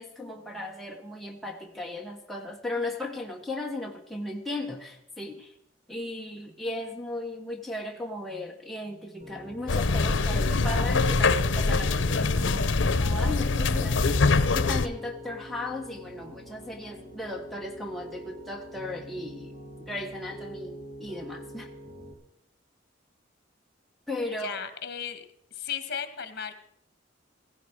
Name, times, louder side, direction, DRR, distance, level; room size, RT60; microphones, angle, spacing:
voice 1, 0.0-5.5 5.9-19.5 19.8-21.7 24.1-24.6, left 2 dB, ahead, 0 dB, 1.3 m, -36 dB
Piano, 9.2-22.1, equal, 35° right, 2.8 m, -45 dB
sound 1, 9.7-14.9, left 3 dB, 85° left, 0.8 m, -24 dB
voice 2, 24.4-25.3 25.5-26.5, left 7 dB, 60° left, 9 dB, 1.7 m, -35 dB
16.0 x 16.0 x 4.8 m, 0.71 s
head